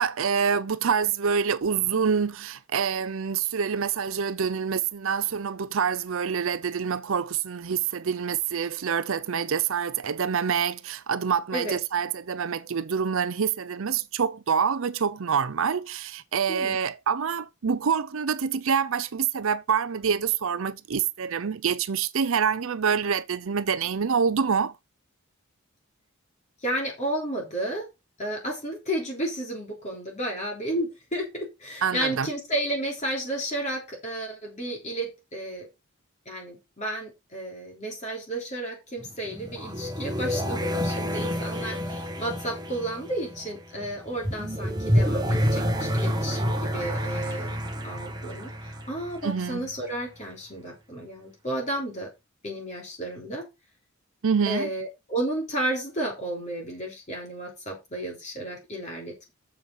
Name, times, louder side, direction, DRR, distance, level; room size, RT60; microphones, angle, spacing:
voice 1, 0.0-24.7 31.8-32.3 49.2-49.6 54.2-54.7, right 6 dB, 65° right, 0.5 m, -26 dB
voice 2, 26.6-27.9 28.2-35.7 36.2-47.6 47.8-52.1 52.4-53.5 54.4-59.3, right 1 dB, 30° left, 3.3 m, -32 dB
sound 1, 39.0-49.8, equal, 20° right, 1.3 m, -29 dB
7.2 x 7.0 x 4.5 m
head